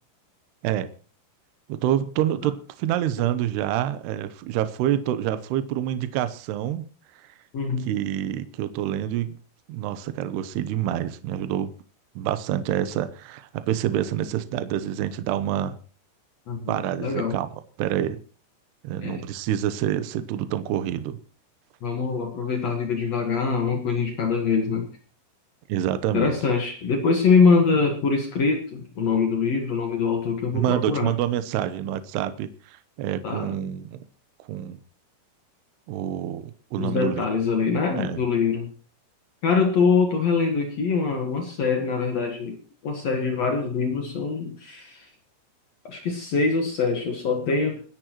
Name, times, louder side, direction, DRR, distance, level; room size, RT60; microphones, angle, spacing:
voice 1, 1.7-6.9 7.2-7.3 7.9-9.4 9.7-11.7 12.2-15.8 16.7-17.5 17.8-18.2 18.8-21.2 25.7-26.4 30.5-34.0 34.5-34.8 35.9-37.2 38.0-38.2, right 11 dB, 85° right, 2.4 m, -27 dB
voice 2, 7.5-7.9 16.5-17.3 19.0-19.3 21.8-24.9 26.1-31.1 33.2-33.5 36.8-38.7 39.4-42.6 42.8-45.1 45.8-47.8, left 5 dB, 85° left, 1.4 m, -24 dB
29.5 x 10.0 x 3.1 m
omnidirectional pair, 5.8 m